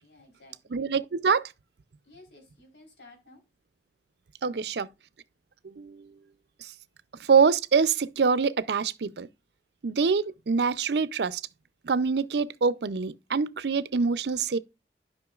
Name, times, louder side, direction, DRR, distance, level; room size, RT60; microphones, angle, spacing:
voice 1, 0.0-0.8 2.0-3.4, left 2 dB, 85° left, 4.0 m, -54 dB
voice 2, 0.7-1.4 4.4-4.9 5.6-6.1 6.6-6.7 7.3-9.3 9.8-11.4 11.8-14.6, right 5 dB, 70° right, 0.5 m, -25 dB
12.0 x 5.6 x 2.4 m
head